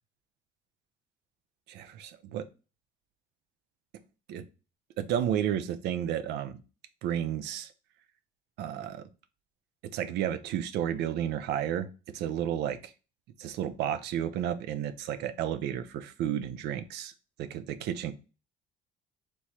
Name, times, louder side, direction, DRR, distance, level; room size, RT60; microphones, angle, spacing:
voice 1, 1.7-2.5 4.3-4.4 5.0-6.6 7.0-7.7 8.6-9.0 9.9-11.9 12.1-12.8 13.4-17.1 17.4-18.1, right 10 dB, 90° right, 12 dB, 0.6 m, -32 dB
3.6 x 3.1 x 4.2 m, 0.32 s
cardioid pair, 155°, 17 cm